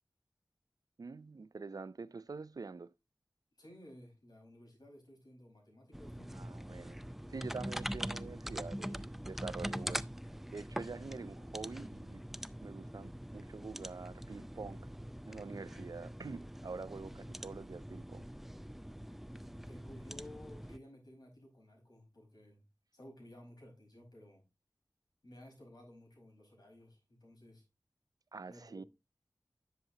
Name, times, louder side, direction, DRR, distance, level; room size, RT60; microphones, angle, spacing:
voice 1, 1.0-2.9 6.4-7.0 7.3-10.0 10.5-12.2 12.6-14.9 15.3-18.3 28.3-28.8, right 4 dB, 60° right, 0.4 m, -46 dB
voice 2, 3.6-6.3 11.8-11.9 17.1-17.3 19.0-22.7 22.9-24.4 25.2-27.6 28.5-28.9, left 1 dB, 75° left, 5.0 m, -56 dB
sound 1, 5.9-20.8, equal, 5° right, 0.4 m, -43 dB
10.5 x 6.9 x 2.8 m
wide cardioid pair, 55°, 7 cm